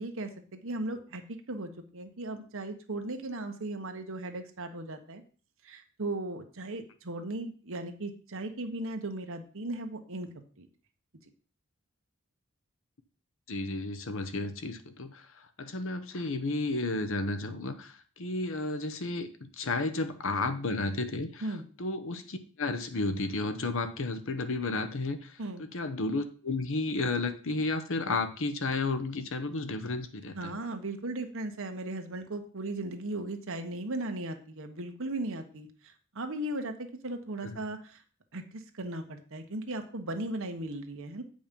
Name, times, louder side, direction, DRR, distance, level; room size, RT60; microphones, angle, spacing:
voice 1, 0.0-5.2 5.6-10.7 21.4-21.6 25.4-25.6 30.3-35.7 36.1-38.0 38.3-41.2, right 2 dB, 65° right, 6 dB, 1.2 m, -37 dB
voice 2, 13.5-15.2 15.6-21.4 21.8-30.5 37.4-37.6, left 3 dB, 65° left, 9 dB, 0.9 m, -32 dB
8.5 x 5.2 x 5.3 m, 0.40 s
head